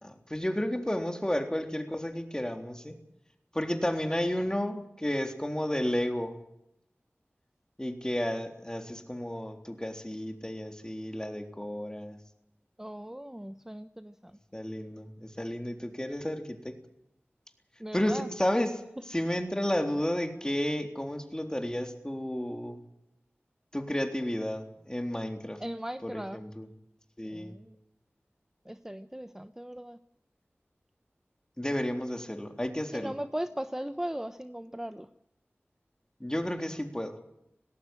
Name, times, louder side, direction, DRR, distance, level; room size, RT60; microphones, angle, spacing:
voice 1, 0.0-3.0 3.5-6.4 7.8-12.2 14.5-16.8 17.9-18.7 19.1-22.8 23.7-25.6 26.0-26.7 27.2-27.5 31.6-33.1 36.2-37.2, left 1 dB, 15° left, 4 dB, 3.6 m, -32 dB
voice 2, 12.8-14.4 17.8-18.3 25.6-26.4 27.3-27.7 28.6-30.0 32.9-35.1, right 1 dB, 10° right, 10 dB, 0.9 m, -38 dB
19.5 x 17.5 x 7.7 m, 0.81 s
wide cardioid pair, 40°, 4 cm